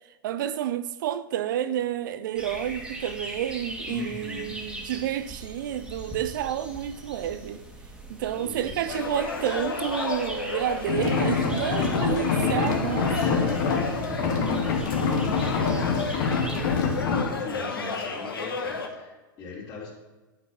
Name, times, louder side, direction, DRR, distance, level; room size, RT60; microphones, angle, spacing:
voice 1, 0.2-7.6 8.1-13.4, right 11 dB, 60° right, 0.5 m, -30 dB
sound 1, 2.3-17.0, right 1 dB, 5° right, 2.1 m, -41 dB
voice 2, 3.9-4.6 8.4-8.7 12.3-19.9, left 3 dB, 35° left, 3.7 m, -39 dB
sound 2, 8.9-18.9, left 4 dB, 80° left, 1.6 m, -33 dB
sound 3, 10.9-17.2, left 5 dB, 55° left, 1.8 m, -26 dB
10.5 x 5.3 x 6.1 m
hypercardioid pair, 100°, 12 cm